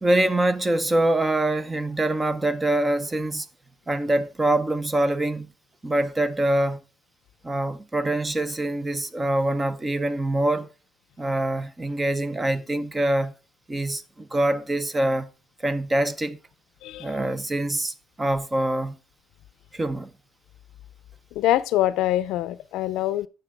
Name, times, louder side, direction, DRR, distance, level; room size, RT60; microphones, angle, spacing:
voice 1, 0.0-3.5 3.9-5.5 5.8-6.8 7.4-10.7 11.2-13.3 13.7-15.3 15.6-16.4 17.0-19.0 19.7-20.1, right 1 dB, 15° right, 0.5 m, -24 dB
voice 2, 16.8-17.1 21.3-23.3, left 14 dB, 85° left, 0.4 m, -24 dB
9.8 x 6.8 x 3.4 m
cardioid pair, 160°, 0 cm